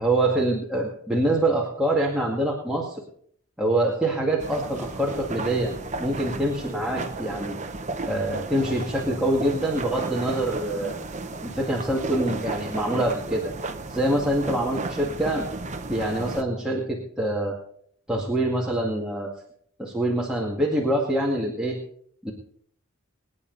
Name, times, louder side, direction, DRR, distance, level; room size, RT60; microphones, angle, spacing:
voice 1, 0.0-3.0 3.6-5.7 6.0-7.5 8.0-11.0 11.4-13.5 13.9-15.4 15.9-17.5 18.1-19.3 19.8-21.8 22.2-22.3, right 1 dB, 5° right, -4 dB, 2.1 m, -25 dB
sound 1, 4.4-16.4, right 3 dB, 35° right, 1.0 m, -34 dB
22.5 x 9.8 x 4.0 m, 0.63 s
head